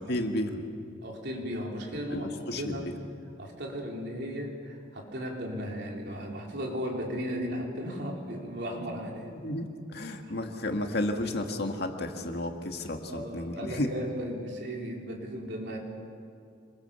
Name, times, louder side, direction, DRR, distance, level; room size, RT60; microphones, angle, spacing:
voice 1, 0.1-0.6 2.1-2.9 9.3-13.9, left 1 dB, 60° left, 4 dB, 2.0 m, -32 dB
voice 2, 1.0-2.9 3.4-9.3 13.1-15.8, equal, 65° right, 0 dB, 3.9 m, -36 dB
26.5 x 21.5 x 7.0 m, 2.4 s
head